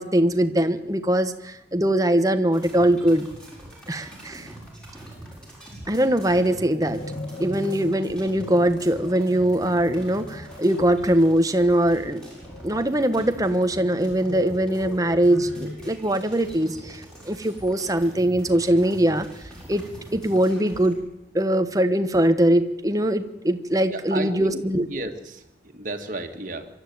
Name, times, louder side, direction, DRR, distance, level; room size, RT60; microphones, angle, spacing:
voice 1, 0.0-3.3 3.9-4.5 5.9-7.0 7.4-12.2 12.6-19.3 19.7-19.8 20.1-21.0 21.3-24.8, right 1 dB, 20° right, 8 dB, 1.2 m, -22 dB
sound 1, 2.5-21.0, right 1 dB, 5° left, 6.7 m, -44 dB
sound 2, 6.0-17.4, left 1 dB, 50° left, 1.8 m, -40 dB
voice 2, 23.9-24.6 24.9-26.7, right 2 dB, 45° right, 5 dB, 2.1 m, -32 dB
24.5 x 12.5 x 9.4 m, 0.93 s
head